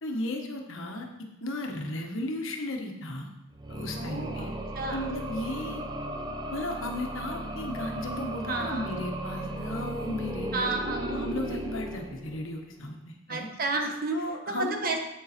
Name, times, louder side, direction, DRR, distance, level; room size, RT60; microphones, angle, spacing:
voice 1, 0.0-1.1 1.4-3.3 3.7-4.5 4.9-5.8 6.5-13.5 14.1-14.9, left 1 dB, 70° left, 2 dB, 1.3 m, -35 dB
sound 1, 3.5-12.6, right 1 dB, 20° right, 0.7 m, -36 dB
voice 2, 4.0-5.0 8.5-8.9 10.5-11.2 13.3-14.2 14.5-15.1, right 3 dB, 45° right, 3 dB, 1.2 m, -31 dB
8.6 x 7.0 x 4.3 m, 0.89 s
head